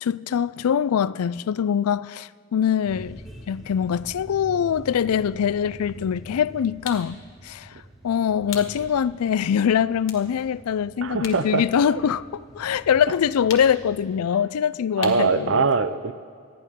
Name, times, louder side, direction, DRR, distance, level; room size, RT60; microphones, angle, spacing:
voice 1, 0.0-3.2 3.5-7.7 8.0-15.7, left 8 dB, 90° left, 0.4 m, -23 dB
sound 1, 2.8-14.2, equal, ahead, 1.6 m, -45 dB
sound 2, 6.8-7.1 8.5-8.8 9.3-9.4 10.0-11.5 11.8-12.8 13.5-13.9 15.0-15.4, left 7 dB, 65° left, 1.5 m, -37 dB
voice 2, 11.0-11.7 15.0-16.1, right 4 dB, 60° right, 0.7 m, -22 dB
26.5 x 10.0 x 3.7 m
head